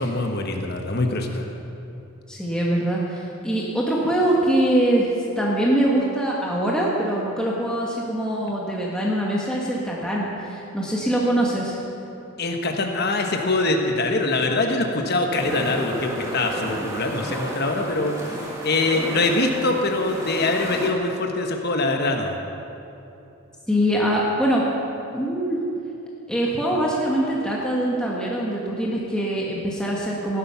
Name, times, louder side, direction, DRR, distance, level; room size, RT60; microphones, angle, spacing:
voice 1, 0.0-1.5 12.4-18.1 18.6-22.4, left 2 dB, 45° left, 3 dB, 1.2 m, -23 dB
voice 2, 2.3-5.1 5.4-11.8 23.7-24.6 25.1-25.6 26.3-30.4, right 1 dB, 5° left, -4 dB, 1.4 m, -23 dB
sound 1, 15.4-20.9, right 1 dB, 15° right, 1.7 m, -32 dB
18.0 x 10.0 x 5.7 m, 2.8 s
head